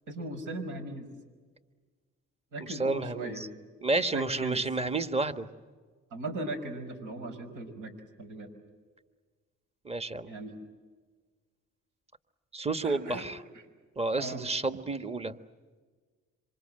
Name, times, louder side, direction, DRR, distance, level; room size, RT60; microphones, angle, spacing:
voice 1, 0.1-1.1 2.5-3.4 4.1-4.6 6.1-7.9 8.2-8.5 10.3-10.6 12.8-13.3 13.5-13.7 14.1-14.4 14.7-14.8, right 2 dB, 80° right, 8 dB, 5.5 m, -38 dB
voice 2, 2.7-3.5 3.8-5.5 9.8-10.3 12.5-13.4 14.0-15.4, right 3 dB, 20° right, 10 dB, 1.4 m, -30 dB
27.0 x 25.5 x 7.7 m, 1.5 s
cardioid pair, 90°, 30 cm